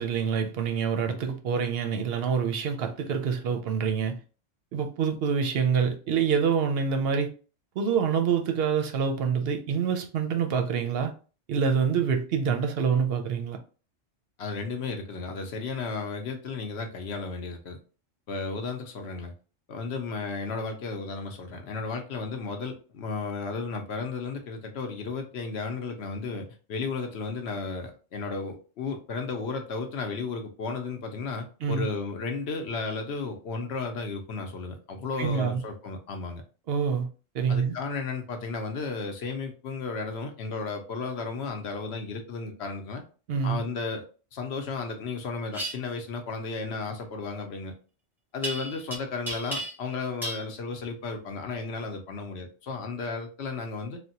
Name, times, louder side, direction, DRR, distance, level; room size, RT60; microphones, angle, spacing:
voice 1, 0.0-4.2 4.7-7.3 7.8-11.1 11.5-13.6 31.6-31.9 35.2-35.6 36.7-37.1 37.3-37.8 43.3-43.6, right 6 dB, 65° right, 0.7 m, -26 dB
voice 2, 14.4-17.8 18.3-19.3 19.7-36.4 37.5-43.0 43.4-44.1 44.3-47.7 48.3-54.0, left 4 dB, 65° left, 0.8 m, -34 dB
sound 1, 45.5-45.7 48.4-49.0 49.3-49.9 50.2-50.4, right 2 dB, 5° right, 0.4 m, -33 dB
3.3 x 2.1 x 2.7 m
omnidirectional pair, 1.3 m